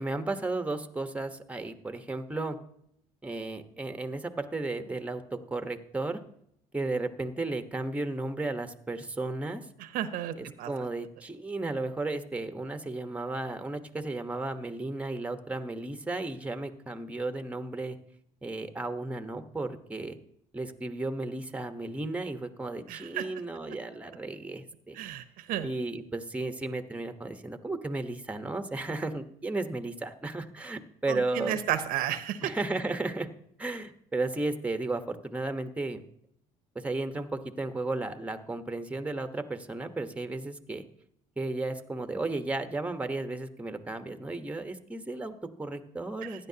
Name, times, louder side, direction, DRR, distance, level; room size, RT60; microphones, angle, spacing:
voice 1, 0.0-2.6 3.2-6.2 6.7-9.6 10.4-18.0 18.4-20.2 20.5-25.0 25.6-31.6 32.4-33.3 33.6-36.0 36.7-40.8 41.4-46.5, right 2 dB, 10° right, 8 dB, 1.2 m, -34 dB
voice 2, 9.8-10.7 22.9-23.2 25.0-25.7 31.1-32.5 46.2-46.4, right 11 dB, 70° right, 11 dB, 0.9 m, -33 dB
15.5 x 10.5 x 2.9 m, 0.69 s
supercardioid pair, 95°, 15 cm